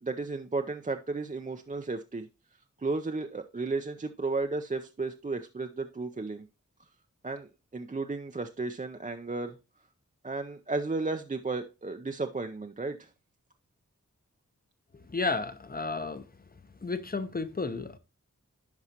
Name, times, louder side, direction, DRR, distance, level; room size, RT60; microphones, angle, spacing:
voice 1, 0.0-2.3 2.8-6.5 7.2-9.6 10.2-13.1, right 3 dB, 25° right, 0.5 m, -34 dB
voice 2, 14.9-16.3 16.8-18.0, left 3 dB, 30° left, 0.7 m, -32 dB
10.5 x 4.8 x 2.8 m
wide cardioid pair, 75°, 29 cm